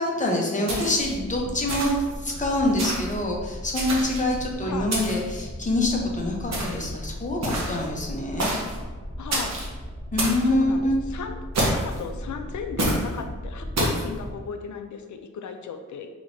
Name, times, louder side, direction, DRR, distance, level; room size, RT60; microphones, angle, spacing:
voice 1, 0.0-8.5 10.1-11.0, left 1 dB, 25° left, -1 dB, 0.7 m, -25 dB
sound 1, 0.7-1.1 1.7-2.1 2.8-3.1 3.7-4.3 4.9-5.3 6.5-6.9 7.4-7.9 8.4-8.8 9.3-9.7 10.2-10.5 11.5-12.0 12.8-13.1 13.8-14.0, right 1 dB, 65° right, 0.9 m, -27 dB
sound 2, 1.0-14.4, equal, 25° right, 1.3 m, -37 dB
voice 2, 9.2-9.5 10.4-11.4 11.7-16.1, left 6 dB, 75° left, 6 dB, 0.5 m, -35 dB
5.0 x 2.9 x 2.6 m, 1.4 s
wide cardioid pair, 140°, 29 cm